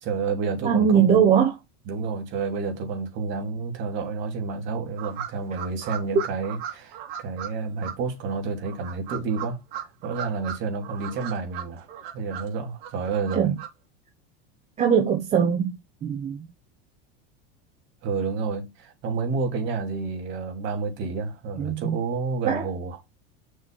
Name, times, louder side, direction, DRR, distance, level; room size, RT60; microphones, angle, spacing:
voice 1, 0.0-1.2 1.9-11.8 12.1-13.5 18.0-23.0, right 4 dB, 40° right, 2.7 m, -30 dB
voice 2, 0.6-1.6 13.3-13.5 14.8-15.7 16.0-16.4 21.6-22.0 22.5-22.6, right 8 dB, 20° right, 0.8 m, -21 dB
sound 1, 5.0-7.5 7.8-7.9 8.6-10.6 10.8-12.5 12.8-13.7, right 10 dB, 70° right, 2.6 m, -36 dB
6.4 x 3.2 x 5.9 m
supercardioid pair, 160°, 31 cm